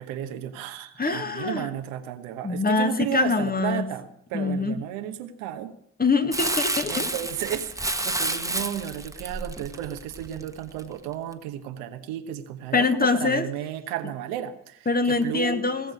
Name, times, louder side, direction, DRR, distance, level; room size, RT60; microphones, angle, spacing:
voice 1, 0.0-5.7 6.9-15.8, right 10 dB, 85° right, 8 dB, 1.2 m, -33 dB
voice 2, 1.0-1.7 2.4-3.9 4.3-4.8 6.0-7.1 12.7-13.5 14.9-15.9, left 4 dB, 30° left, 8 dB, 1.8 m, -24 dB
Crumpling crinkling, 6.3-10.8 11.3-11.4, right 2 dB, 10° right, 1.4 m, -30 dB
18.0 x 7.2 x 8.4 m, 0.72 s
hypercardioid pair, 45°, 33 cm